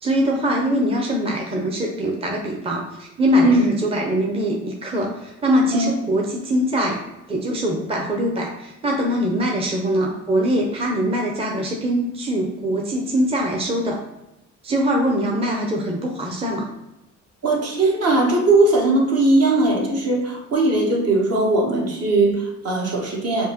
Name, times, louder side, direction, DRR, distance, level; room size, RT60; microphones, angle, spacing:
voice 1, 0.0-7.0 7.3-14.0 14.6-16.7, equal, 20° right, 0 dB, 0.6 m, -22 dB
voice 2, 17.4-23.5, right 2 dB, 55° right, -1 dB, 1.1 m, -19 dB
5.2 x 2.2 x 2.9 m, 0.93 s
cardioid pair, 90°, 30 cm